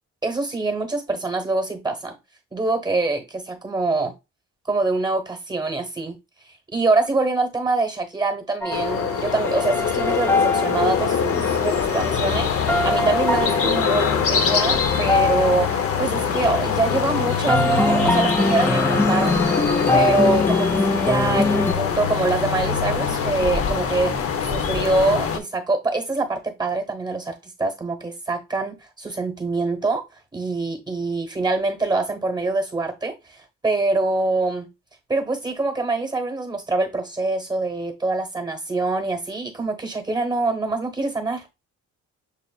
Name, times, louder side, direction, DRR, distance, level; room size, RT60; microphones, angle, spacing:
voice 1, 0.2-2.2 2.5-4.1 4.7-6.2 6.7-19.4 19.9-24.2 24.5-30.0 30.3-33.4 33.6-34.7 35.1-41.6, right 3 dB, 15° right, 1.1 m, -24 dB
sound 1, 8.6-21.7, left 2 dB, 10° left, 0.4 m, -24 dB
sound 2, 8.7-25.4, left 7 dB, 50° left, 0.7 m, -23 dB
6.9 x 2.4 x 2.3 m
cardioid pair, 90°, 30 cm